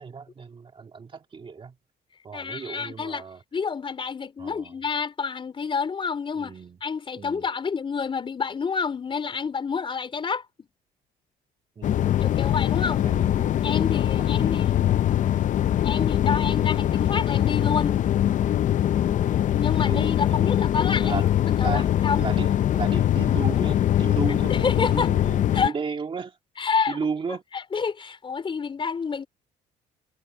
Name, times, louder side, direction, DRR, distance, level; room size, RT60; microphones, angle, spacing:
voice 1, 0.0-1.8 2.2-3.4 4.4-4.7 6.4-6.8 7.2-7.4 11.8-12.1 12.4-12.5 12.7-13.5 14.2-15.1 19.0-20.5 20.9-26.4 26.9-27.4, right 5 dB, 30° right, 2.5 m, -35 dB
voice 2, 2.3-3.2 3.5-10.4 12.2-13.1 13.6-14.8 15.8-18.0 19.5-21.2 21.6-22.3 24.5-25.1 25.5-25.7 26.6-27.0 27.5-29.3, left 5 dB, 30° left, 4.2 m, -28 dB
sound 1, 11.8-25.7, left 11 dB, 50° left, 0.6 m, -22 dB
cardioid pair, 110°, 17 cm